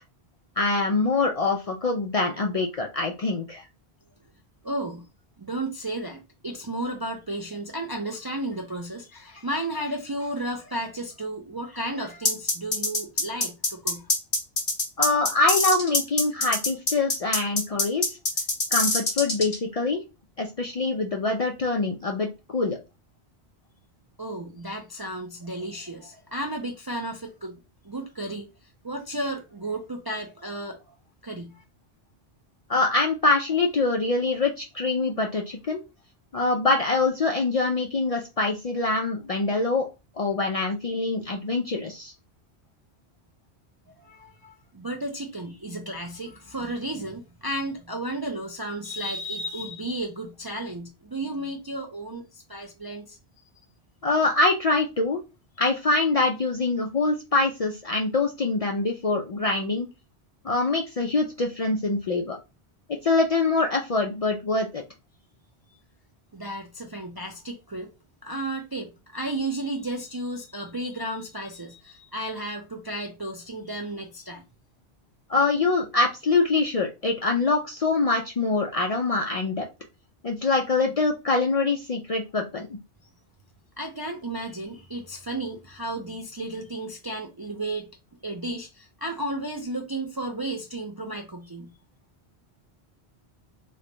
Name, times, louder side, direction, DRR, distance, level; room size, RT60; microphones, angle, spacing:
voice 1, 0.6-3.6 15.0-18.2 18.7-20.0 20.4-22.8 32.7-35.8 36.3-39.9 40.2-42.1 54.0-55.2 55.6-59.9 60.4-62.4 63.0-64.8 75.3-79.7 80.2-82.7, left 3 dB, 55° left, 0.4 m, -24 dB
voice 2, 4.6-5.0 5.4-14.1 24.2-27.6 27.8-28.5 28.8-30.8 31.2-31.6 44.0-53.2 66.3-67.9 68.2-74.4 83.8-87.9 88.2-91.7, right 1 dB, 35° right, 0.3 m, -33 dB
sound 1, 12.2-19.6, left 2 dB, 35° left, 0.9 m, -24 dB
3.2 x 2.2 x 3.8 m
omnidirectional pair, 1.1 m